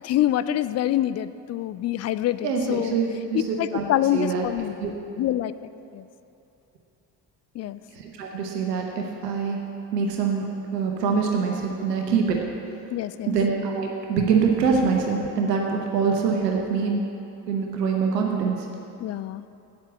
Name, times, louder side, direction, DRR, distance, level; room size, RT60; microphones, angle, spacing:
voice 1, 0.0-3.0 3.3-4.8 5.2-5.5 5.9-6.0 7.6-7.8 12.9-13.4 19.0-19.5, left 12 dB, 35° left, 14 dB, 0.4 m, -26 dB
voice 2, 2.4-3.8 4.1-4.4 4.8-5.0 7.9-9.6 9.9-12.4 13.3-17.0 17.5-18.7, right 5 dB, 80° right, 1 dB, 1.0 m, -24 dB
8.4 x 7.5 x 7.7 m, 2.8 s
figure-of-eight pair, 45°, 48 cm